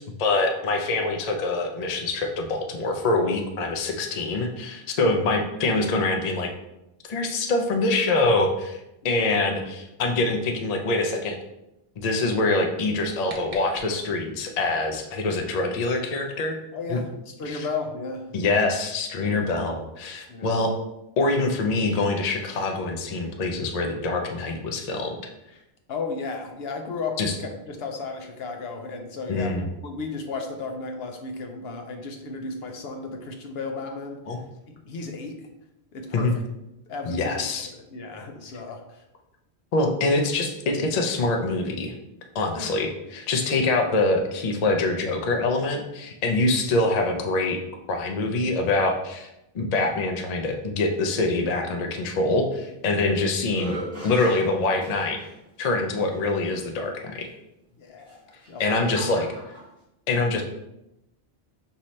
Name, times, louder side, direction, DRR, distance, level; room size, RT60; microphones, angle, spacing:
voice 1, 0.0-6.5 7.1-8.8 9.0-11.4 12.0-16.6 16.9-17.0 17.5-17.7 18.3-20.8 21.2-25.2 27.2-27.3 29.3-29.6 34.3-34.4 36.1-36.3 37.0-37.7 39.7-41.9 42.3-47.6 47.9-49.3 49.5-53.8 54.0-55.2 55.6-57.3 58.6-59.3 60.1-60.4, left 2 dB, 45° left, 3 dB, 0.6 m, -24 dB
sound 1, 12.8-14.5, right 1 dB, 50° right, 0.9 m, -44 dB
voice 2, 16.7-18.3 19.2-19.4 20.3-20.5 25.9-34.4 34.7-35.5 35.9-36.4 36.9-37.4 37.7-39.0 42.6-42.7 57.8-58.2 58.5-58.8, left 4 dB, 75° left, 4 dB, 0.8 m, -34 dB
sound 2, 52.6-53.1 53.5-55.3 56.1-56.2 58.0-59.7, equal, 5° left, 1.2 m, -38 dB
5.5 x 2.8 x 3.1 m, 0.89 s
omnidirectional pair, 1.1 m